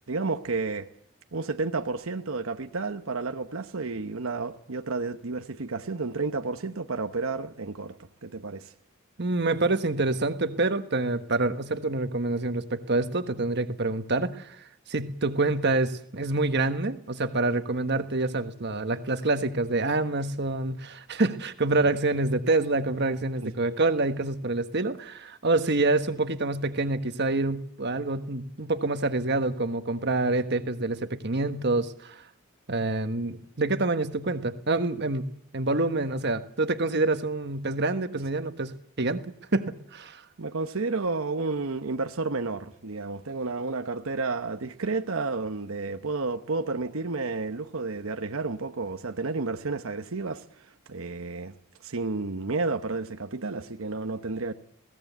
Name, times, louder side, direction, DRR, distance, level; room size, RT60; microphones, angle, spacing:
voice 1, 0.1-0.9 1.3-7.9 8.2-8.7 21.8-21.9 23.4-23.5 40.4-51.5 51.8-54.5, right 3 dB, 85° right, 1.0 m, -31 dB
voice 2, 9.2-32.2 32.7-39.2 39.5-40.2, right 2 dB, 55° right, 1.4 m, -27 dB
21.5 x 17.0 x 8.1 m
head